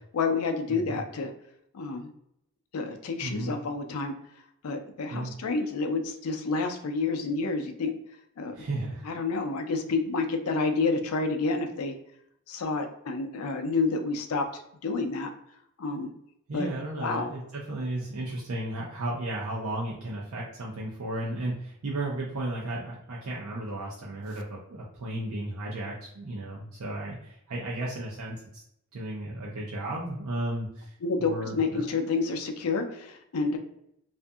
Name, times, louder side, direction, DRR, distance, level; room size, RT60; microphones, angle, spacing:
voice 1, 0.1-1.3 1.7-2.1 2.7-4.1 4.6-7.9 8.4-8.6 9.0-11.9 12.5-15.3 15.8-16.1 16.5-16.7 17.0-17.3 31.0-33.6, left 4 dB, 85° left, 6 dB, 0.4 m, -29 dB
voice 2, 0.7-1.0 3.2-3.5 5.1-5.3 8.5-9.1 16.5-28.6 28.9-30.9 31.2-31.8, right 1 dB, 90° right, -4 dB, 0.5 m, -34 dB
2.6 x 2.5 x 2.3 m, 0.75 s
head